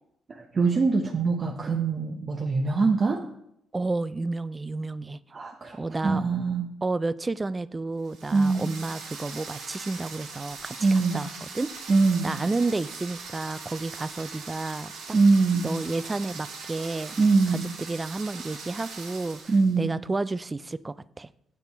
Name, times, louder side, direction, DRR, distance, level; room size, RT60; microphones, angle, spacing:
voice 1, 0.3-3.2 5.3-5.8 6.0-6.7 8.3-8.7 10.8-11.2 11.9-12.4 15.1-15.8 17.2-17.8 19.5-20.0, right 4 dB, 35° right, 1 dB, 0.8 m, -23 dB
voice 2, 3.7-5.2 5.7-6.2 6.8-10.9 11.1-11.3 11.5-11.7 12.2-14.9 15.6-17.1 17.8-19.4 19.8-21.3, right 3 dB, 20° right, 17 dB, 0.3 m, -31 dB
sound 1, 8.0-19.8, right 4 dB, 85° right, 2.2 m, -41 dB
7.0 x 6.7 x 4.1 m, 0.76 s
cardioid pair, 90°, 0 cm